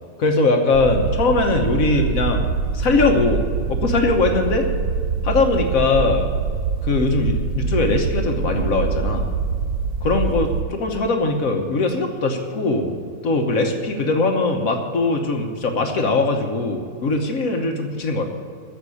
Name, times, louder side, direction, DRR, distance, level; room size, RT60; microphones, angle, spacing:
voice 1, 0.2-2.5 2.7-4.7 5.2-6.3 6.8-9.3 10.0-12.9 13.2-18.2, left 3 dB, 75° left, 3 dB, 1.5 m, -21 dB
sound 1, 0.7-10.6, right 5 dB, 80° right, 1.3 m, -24 dB
15.0 x 5.7 x 9.9 m, 2.2 s
omnidirectional pair, 1.4 m